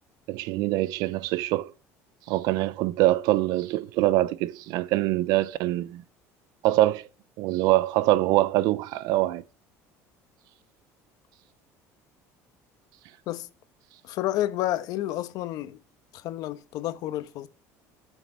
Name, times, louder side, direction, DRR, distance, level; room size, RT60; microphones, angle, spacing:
voice 1, 0.3-1.7 2.3-6.0 6.6-7.1 7.4-9.4, right 16 dB, 70° right, 0.5 m, -24 dB
voice 2, 14.0-15.8 16.1-17.5, left 14 dB, 65° left, 1.0 m, -30 dB
13.5 x 6.3 x 5.5 m
cardioid pair, 120°, 7 cm